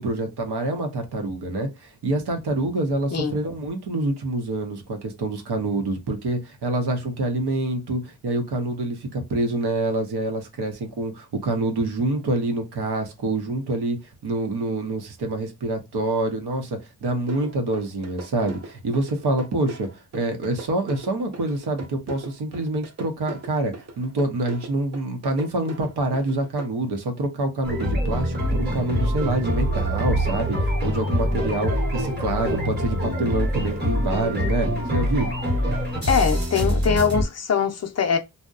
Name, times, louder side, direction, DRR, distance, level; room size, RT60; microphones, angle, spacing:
voice 1, 0.0-14.0 14.2-19.9 20.1-35.3, right 2 dB, 85° right, 0.8 m, -26 dB
voice 2, 3.1-3.4 36.1-38.2, left 6 dB, 45° left, 0.5 m, -22 dB
sound 1, 17.3-26.7, right 2 dB, 45° right, 0.6 m, -38 dB
sound 2, 27.6-37.2, equal, 25° right, 0.9 m, -24 dB
2.7 x 2.1 x 2.3 m
wide cardioid pair, 130°, 39 cm